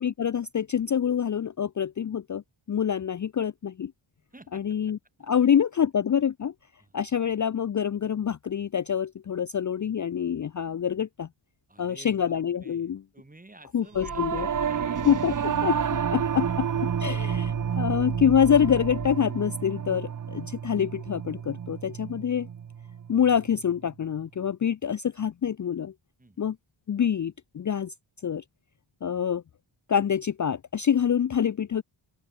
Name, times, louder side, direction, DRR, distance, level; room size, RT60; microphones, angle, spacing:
voice 1, 0.0-2.4 2.7-3.9 4.5-5.0 5.3-6.5 6.9-11.3 11.8-13.0 13.7-14.5 15.1-15.3 15.6-15.7 16.1-16.7 17.0-22.5 23.1-25.9 26.4-26.6 26.9-27.9 28.2-28.4 29.0-29.4 29.9-31.8, left 8 dB, 40° left, 0.5 m, -26 dB
voice 2, 4.3-4.9 5.3-5.5 5.7-5.8 6.8-7.2 11.7-16.0 16.4-16.6 17.7-17.8 20.4-20.5 26.2-26.4, right 2 dB, 15° right, 7.3 m, -52 dB
sound 1, 13.9-19.1, left 10 dB, 85° left, 1.2 m, -43 dB
Singing / Musical instrument, 14.0-23.5, right 8 dB, 40° right, 0.7 m, -30 dB
open air
wide cardioid pair, 175°, 48 cm